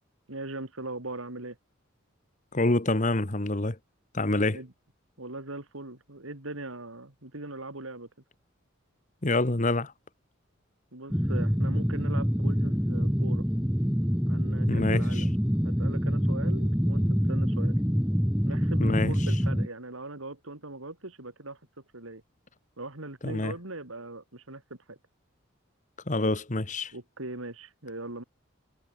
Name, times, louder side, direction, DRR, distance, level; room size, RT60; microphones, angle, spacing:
voice 1, 0.3-1.6 4.5-4.7 5.2-8.1 10.9-13.4 14.3-15.3 15.6-17.8 18.5-21.6 21.9-22.2 22.8-24.6 24.9-25.0 26.9-28.2, right 2 dB, 80° right, 3.5 m, -40 dB
voice 2, 2.5-3.8 4.1-4.6 9.2-9.9 14.7-15.2 18.8-19.1 23.2-23.5 26.1-26.9, left 2 dB, 35° left, 1.4 m, -26 dB
sound 1, 11.1-19.7, equal, 5° right, 1.9 m, -26 dB
head